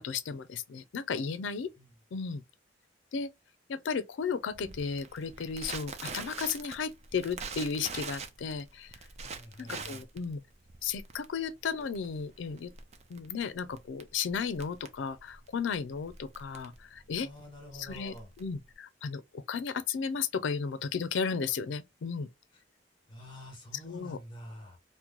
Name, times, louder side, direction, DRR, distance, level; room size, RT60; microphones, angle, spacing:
voice 1, 0.0-1.7 2.1-2.4 3.1-3.3 3.7-8.9 9.6-10.4 10.8-12.7 13.1-17.3 17.8-22.3 23.8-24.2, left 6 dB, 80° left, 0.4 m, -34 dB
voice 2, 1.4-1.9 9.2-10.1 17.2-18.3 22.5-22.6 23.1-24.8, left 1 dB, 25° left, 1.2 m, -48 dB
Crackle, 4.5-18.7, right 4 dB, 35° right, 0.5 m, -45 dB
2.9 x 2.1 x 3.7 m
head